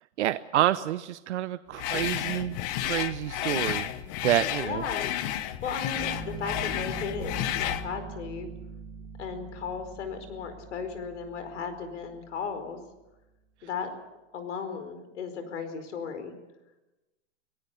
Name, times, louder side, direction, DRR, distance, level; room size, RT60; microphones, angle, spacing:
voice 1, 0.2-3.9 4.2-4.8, right 13 dB, 75° right, 13 dB, 0.8 m, -28 dB
sound 1, 1.8-7.9, left 12 dB, 35° left, 1.0 m, -31 dB
voice 2, 4.6-5.1 5.4-8.5 9.2-12.8 13.6-14.0 14.3-16.3, left 6 dB, 80° left, 9 dB, 4.8 m, -36 dB
sound 2, 5.9-12.8, right 6 dB, 10° right, 1.1 m, -43 dB
25.5 x 18.5 x 6.9 m, 1.0 s
supercardioid pair, 160°, 35 cm